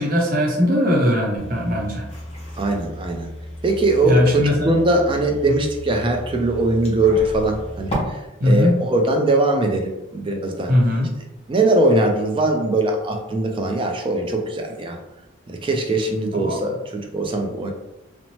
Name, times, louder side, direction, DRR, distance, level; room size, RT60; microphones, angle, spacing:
voice 1, 0.0-2.0 4.0-4.7 8.4-8.7 10.7-11.1 16.3-16.6, left 1 dB, 45° right, -2 dB, 0.7 m, -19 dB
sound 1, 1.4-8.0, equal, 30° left, 0.7 m, -35 dB
voice 2, 2.6-3.3 3.6-10.7 11.5-15.0 15.5-17.7, right 2 dB, 25° right, 3 dB, 0.3 m, -21 dB
2.8 x 2.0 x 3.0 m, 0.96 s
head